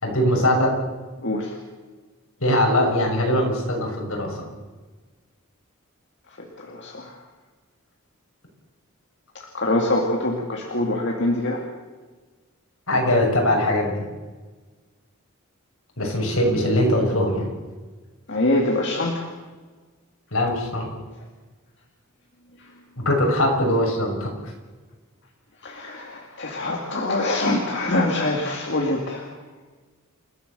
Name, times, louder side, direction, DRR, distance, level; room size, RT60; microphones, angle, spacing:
voice 1, 0.0-0.7 2.4-4.4 12.9-14.0 16.0-17.5 20.3-20.9 23.0-24.5, left 1 dB, 75° left, 1 dB, 6.7 m, -21 dB
voice 2, 6.7-7.1 9.5-11.6 18.3-19.2 25.6-29.2, left 2 dB, 55° left, 0 dB, 2.6 m, -24 dB
29.0 x 15.5 x 7.0 m, 1.3 s
head